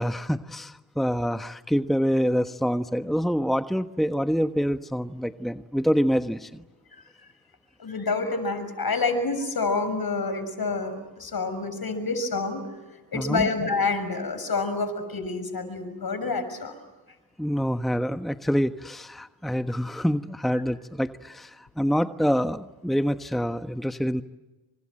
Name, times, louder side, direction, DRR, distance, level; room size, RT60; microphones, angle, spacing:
voice 1, 0.0-6.6 13.1-13.5 17.4-24.2, equal, ahead, 8 dB, 1.2 m, -26 dB
voice 2, 7.8-12.6 13.1-16.7, left 3 dB, 50° left, 11 dB, 6.8 m, -28 dB
29.0 x 26.0 x 7.8 m, 1.1 s
cardioid pair, 55°, 45 cm